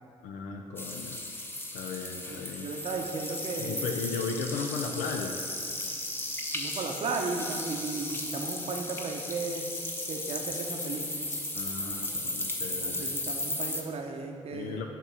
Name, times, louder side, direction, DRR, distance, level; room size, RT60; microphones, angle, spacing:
voice 1, 0.2-1.2 1.7-2.7 3.6-5.4 11.5-13.1 14.5-14.9, left 5 dB, 85° left, 3 dB, 0.4 m, -36 dB
sound 1, 0.8-13.8, left 1 dB, 15° left, 0.8 m, -35 dB
voice 2, 2.3-3.9 6.5-9.6 10.1-11.2 12.7-14.8, right 4 dB, 55° right, 2 dB, 0.7 m, -35 dB
sound 2, 5.8-11.7, left 5 dB, 70° left, 0.8 m, -45 dB
7.2 x 2.9 x 5.9 m, 2.4 s
supercardioid pair, 60°, 13 cm